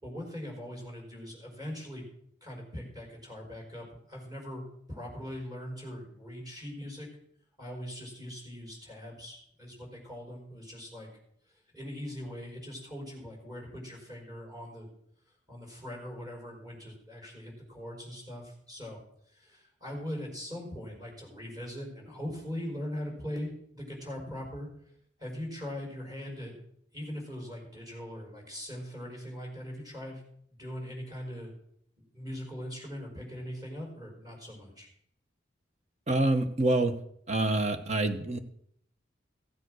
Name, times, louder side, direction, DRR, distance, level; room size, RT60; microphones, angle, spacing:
voice 1, 0.0-2.1 2.4-4.6 4.9-7.1 7.6-11.1 11.7-14.9 15.5-19.0 19.3-24.7 25.2-26.6 26.9-30.2 30.5-31.5 32.1-34.9, equal, 20° right, 0 dB, 5.0 m, -41 dB
voice 2, 36.1-37.0 37.3-38.4, right 2 dB, 35° right, 8 dB, 1.1 m, -26 dB
15.5 x 7.7 x 6.3 m, 0.68 s
head